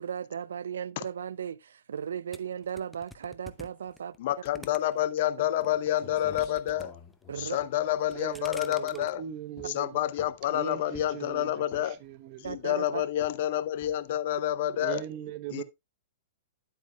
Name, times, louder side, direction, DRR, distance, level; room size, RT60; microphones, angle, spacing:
voice 1, 0.0-4.1 7.3-7.6 12.4-13.0, right 8 dB, 70° right, 0.4 m, -36 dB
sound 1, 2.3-5.2 5.6-6.9 7.1-7.6 8.0-9.1, left 1 dB, ahead, 0.7 m, -48 dB
voice 2, 4.2-6.9 7.4-9.2 9.7-12.0 12.4-15.0 15.5-15.6, left 12 dB, 55° left, 0.7 m, -28 dB
sound 2, 5.7-5.8 6.0-8.6 9.0-9.2 9.6-10.5 10.9-11.3 11.7-12.1 12.4-12.8 13.2-13.4 13.8-14.1, left 6 dB, 30° left, 2.1 m, -51 dB
voice 3, 8.1-10.0 10.5-12.6 14.8-15.6, right 11 dB, 45° right, 0.9 m, -40 dB
9.5 x 8.4 x 2.3 m
hypercardioid pair, 110°, 0 cm